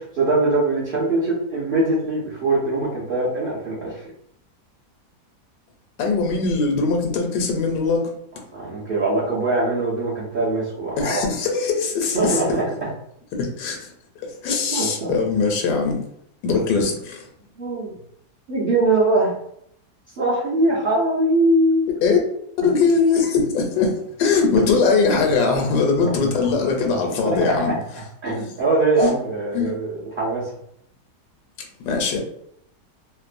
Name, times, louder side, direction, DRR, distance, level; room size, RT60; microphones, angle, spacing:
voice 1, 0.2-4.0 8.5-11.2 12.1-12.7 14.7-15.1 17.6-17.9 18.5-19.3 20.2-21.9 22.6-22.7 24.6-24.7 27.2-27.8 28.2-30.5, right 2 dB, 50° right, -8 dB, 0.6 m, -22 dB
voice 2, 6.0-8.1 11.0-12.4 13.4-13.9 14.2-16.0 16.4-17.2 22.0-22.2 22.6-27.7 29.0-29.1 29.5-29.7 31.8-32.2, left 4 dB, 85° left, 2 dB, 1.2 m, -21 dB
2.9 x 2.0 x 2.5 m, 0.72 s
omnidirectional pair, 1.8 m